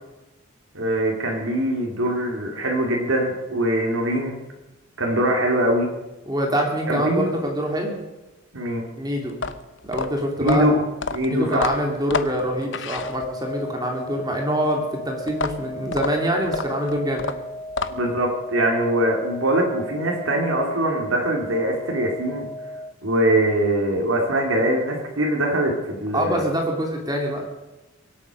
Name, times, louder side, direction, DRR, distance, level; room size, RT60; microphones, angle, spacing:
voice 1, 0.7-4.4 5.0-5.9 6.9-7.3 8.5-8.9 10.4-10.8 11.1-11.7 17.9-22.5 23.0-26.4, right 1 dB, 70° right, 0 dB, 2.8 m, -22 dB
voice 2, 6.3-8.0 9.0-9.4 9.8-10.7 11.3-17.3 26.1-27.4, equal, 20° right, 1 dB, 2.5 m, -25 dB
sound 1, 9.3-13.6 15.3-18.2, left 4 dB, 55° left, 0.9 m, -30 dB
sound 2, 12.9-22.9, left 1 dB, 15° left, 1.1 m, -36 dB
24.0 x 8.4 x 6.3 m, 1.0 s
head